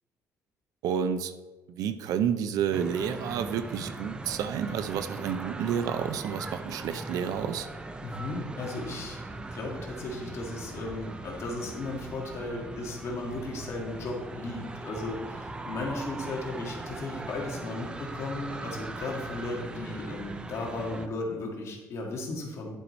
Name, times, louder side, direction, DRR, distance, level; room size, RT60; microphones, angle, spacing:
voice 1, 0.8-1.3 1.7-7.7, right 8 dB, 70° right, 11 dB, 0.5 m, -30 dB
sound 1, 2.7-21.1, right 2 dB, 15° right, 0.4 m, -40 dB
voice 2, 8.0-22.7, left 2 dB, 45° left, -1 dB, 1.9 m, -35 dB
10.0 x 4.7 x 4.1 m, 1.2 s
cardioid pair, 155°, 6 cm